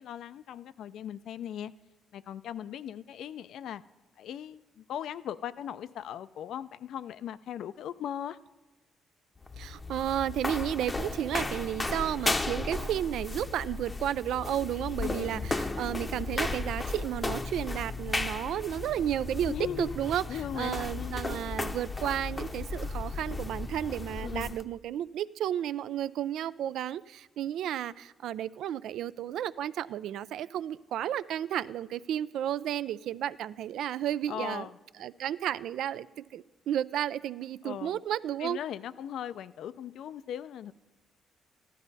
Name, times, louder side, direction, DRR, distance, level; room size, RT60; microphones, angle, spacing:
voice 1, 0.0-1.7 2.1-3.8 4.2-8.4 15.0-15.5 19.5-20.0 20.3-21.2 24.2-24.6 34.3-34.7 37.6-38.0 38.4-40.7, left 10 dB, 75° left, 15 dB, 0.4 m, -38 dB
sound 1, 9.4-24.6, left 3 dB, 20° left, 0.7 m, -35 dB
voice 2, 9.6-34.7 35.0-38.6, right 11 dB, 80° right, 16 dB, 0.3 m, -32 dB
14.5 x 11.5 x 4.1 m, 1.2 s
cardioid pair, 90°, 0 cm